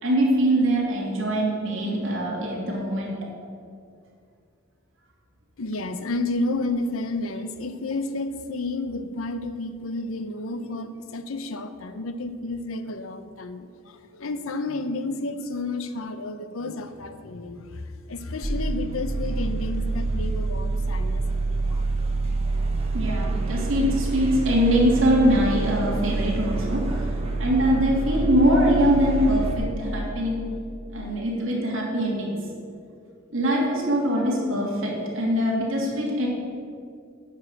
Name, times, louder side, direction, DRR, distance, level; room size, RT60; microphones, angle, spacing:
voice 1, 0.0-3.2 22.9-27.1 27.4-30.4 30.9-32.5 33.3-36.3, equal, 65° right, -3 dB, 2.7 m, -23 dB
voice 2, 5.6-21.9, left 2 dB, 80° left, 10 dB, 0.7 m, -31 dB
sound 1, 18.4-29.6, right 3 dB, 30° right, 1.1 m, -27 dB
9.5 x 5.6 x 7.8 m, 2.3 s
head